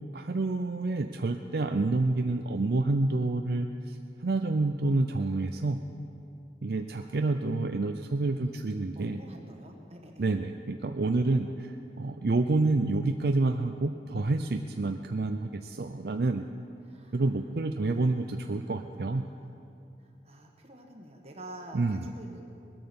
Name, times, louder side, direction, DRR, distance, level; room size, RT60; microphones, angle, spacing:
voice 1, 0.1-5.8 6.6-9.2 10.2-11.7 12.0-16.5 17.1-19.2 21.7-22.1, right 2 dB, 60° right, 5 dB, 0.5 m, -28 dB
voice 2, 7.0-7.4 8.3-8.5 8.9-10.3 11.4-11.5 16.8-17.2 17.9-19.6 20.0-22.4, right 1 dB, 35° right, 1 dB, 1.4 m, -48 dB
20.0 x 9.4 x 7.0 m, 2.6 s
head